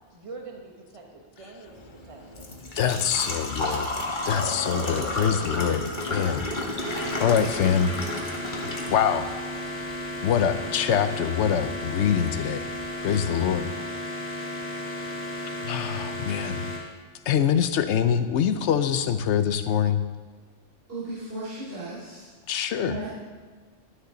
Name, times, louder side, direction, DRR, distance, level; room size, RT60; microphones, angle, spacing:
voice 1, 0.1-2.4 2.8-2.9 3.3-3.5, right 3 dB, 25° right, 0 dB, 1.4 m, -44 dB
Engine / Trickle dribble / Fill (with liquid), 1.7-13.6, left 2 dB, 40° left, 1.4 m, -33 dB
voice 2, 2.8-3.9 4.2-6.5 6.7-8.0 8.9-9.3 10.2-12.7 13.0-13.7 15.6-16.7 17.3-20.0 22.5-23.0, left 8 dB, 70° left, 10 dB, 0.9 m, -24 dB
sound 1, 6.8-16.8, left 1 dB, 10° right, 1.9 m, -34 dB
voice 3, 20.9-22.3 22.8-23.1, right 2 dB, 50° right, -12 dB, 3.8 m, -35 dB
12.5 x 9.8 x 3.9 m, 1.5 s
omnidirectional pair, 1.3 m